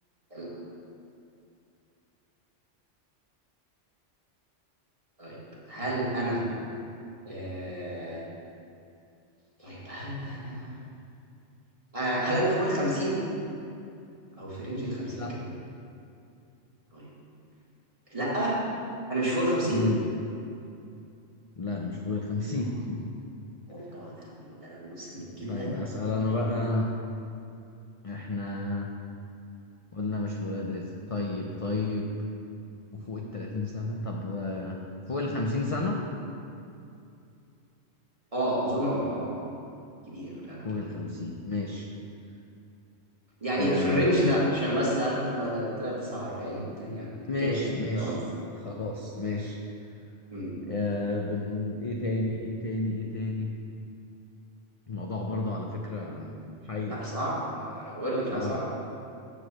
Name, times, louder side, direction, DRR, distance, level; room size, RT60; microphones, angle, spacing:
voice 1, 5.7-6.4 7.3-8.2 9.6-10.8 11.9-13.2 14.3-15.5 16.9-17.1 18.1-18.5 19.1-19.8 23.7-25.7 26.2-26.4 38.3-39.4 40.1-40.6 43.4-47.1 47.4-47.7 47.9-48.2 50.3-50.5 56.9-58.7, equal, 30° right, -7 dB, 2.0 m, -30 dB
voice 2, 21.6-23.1 25.4-26.9 28.0-28.9 29.9-32.2 32.9-34.8 35.1-36.0 40.6-41.9 43.5-44.2 46.6-46.7 47.3-48.2 48.6-49.6 50.6-53.6 54.9-57.1 58.3-58.6, left 2 dB, 40° left, 0 dB, 0.6 m, -31 dB
8.1 x 5.0 x 7.4 m, 2.6 s
omnidirectional pair, 1.2 m